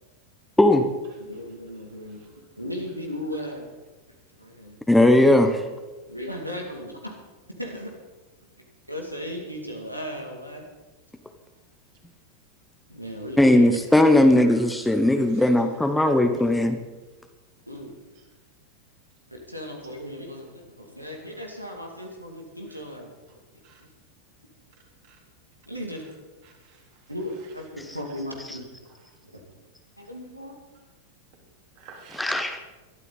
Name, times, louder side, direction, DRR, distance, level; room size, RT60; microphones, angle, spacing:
voice 1, 1.2-3.7 4.4-4.8 6.1-7.1 7.6-7.9 8.9-10.7 12.9-13.7 17.7-18.0 19.3-23.1 23.8-23.9 25.7-26.0 27.1-28.7 29.3-29.4 30.0-30.5, equal, 90° right, 1 dB, 2.4 m, -36 dB
voice 2, 4.9-5.6 13.4-16.8 32.2-32.5, left 1 dB, 5° left, 7 dB, 1.1 m, -18 dB
voice 3, 14.1-14.5 15.2-15.6 22.7-22.8 23.6-23.8 25.0-25.2 26.4-27.0 28.1-28.2 31.8-32.3, right 5 dB, 45° right, 0 dB, 3.8 m, -51 dB
22.0 x 12.0 x 4.1 m, 1.2 s
figure-of-eight pair, 90°, 0 cm